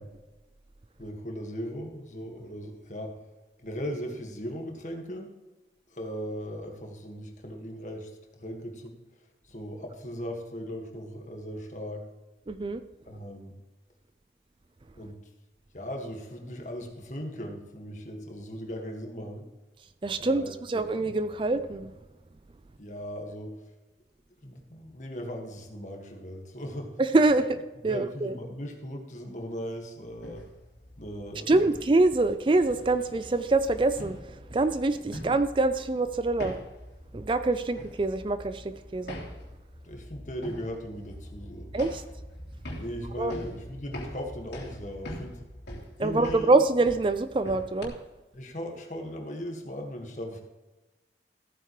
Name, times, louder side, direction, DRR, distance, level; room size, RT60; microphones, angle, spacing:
voice 1, 1.0-3.1 3.6-5.3 5.9-9.0 9.4-12.1 13.1-13.6 15.0-15.2 15.7-19.5 20.2-21.0 22.8-23.6 24.4-27.0 27.8-30.5 31.0-31.7 35.1-35.3 39.8-41.7 42.8-45.4 46.0-46.5 48.3-50.4, equal, 45° left, 2 dB, 1.8 m, -38 dB
voice 2, 12.5-12.8 20.0-21.9 27.0-27.6 27.8-28.3 31.5-36.5 37.1-39.2 41.7-42.0 43.2-43.3 46.0-47.9, right 2 dB, 30° right, 11 dB, 0.4 m, -25 dB
sound 1, 30.1-47.9, equal, 75° left, 3.0 m, -43 dB
14.5 x 9.1 x 3.2 m, 1.1 s
head